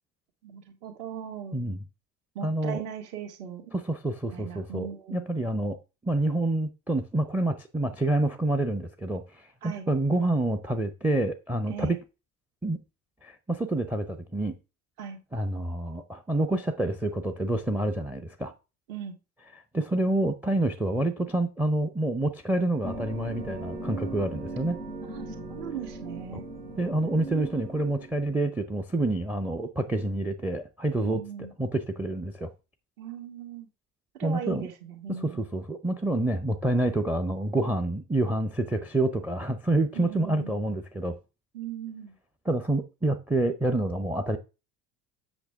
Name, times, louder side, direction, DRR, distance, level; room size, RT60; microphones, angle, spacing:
voice 1, 0.4-1.6 2.4-3.6 4.3-5.4 9.6-9.9 11.7-12.0 15.0-15.2 18.9-19.2 25.1-26.5 31.0-31.5 33.0-33.7 34.1-35.4 39.9-40.5 41.5-42.2, right 8 dB, 55° right, 2.0 m, -39 dB
voice 2, 1.5-1.8 2.4-2.8 3.7-5.8 6.0-12.0 12.6-12.8 13.2-14.6 15.3-18.5 19.7-24.8 26.3-26.4 26.8-32.5 34.2-34.7 35.1-41.2 42.5-44.4, right 2 dB, 5° right, 0.5 m, -28 dB
sound 1, 22.8-28.1, right 2 dB, 85° right, 2.6 m, -38 dB
8.0 x 5.9 x 3.5 m
figure-of-eight pair, 65°, 46 cm